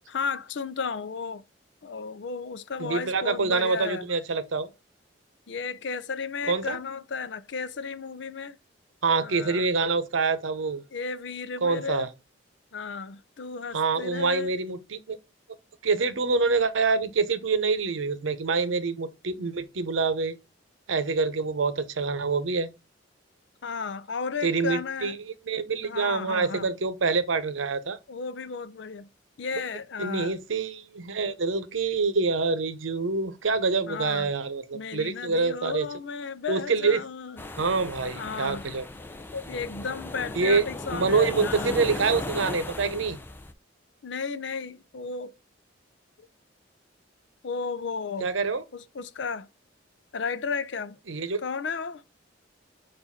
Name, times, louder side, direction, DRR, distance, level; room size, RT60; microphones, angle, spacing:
voice 1, 0.1-1.4 1.8-4.1 5.5-8.6 9.2-9.7 10.9-12.1 12.7-14.5 23.6-25.2 25.8-26.7 28.1-29.1 29.4-30.3 33.9-34.3 34.7-37.4 38.1-38.6 39.3-41.8 44.0-45.4 46.2-46.3 47.4-48.3 48.7-49.5 50.1-51.0 51.4-52.0, left 5 dB, 65° left, 0.5 m, -34 dB
voice 2, 2.8-4.7 6.5-6.8 9.0-10.8 11.6-12.1 13.7-15.2 15.8-20.3 20.9-22.7 24.4-28.0 30.0-35.9 36.5-37.0 37.6-38.9 40.4-40.6 40.9-43.2 48.2-48.6 51.1-51.4, right 4 dB, 85° right, 0.7 m, -26 dB
sound 1, 37.4-43.5, left 2 dB, 10° left, 0.5 m, -36 dB
7.1 x 2.6 x 5.6 m
head